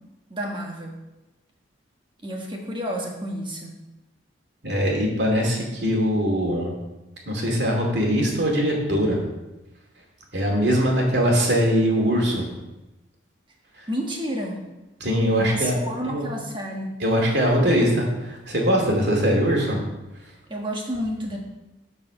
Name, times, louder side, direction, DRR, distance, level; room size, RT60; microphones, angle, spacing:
voice 1, 0.3-0.9 2.2-3.7 13.9-14.6 15.4-17.0 20.5-21.4, equal, 25° right, 0 dB, 1.4 m, -30 dB
voice 2, 4.6-6.7 7.3-9.2 10.3-12.4 15.0-15.7 16.0-16.3 17.0-19.8, equal, 60° right, 0 dB, 2.5 m, -21 dB
13.0 x 4.8 x 5.0 m, 1.0 s
head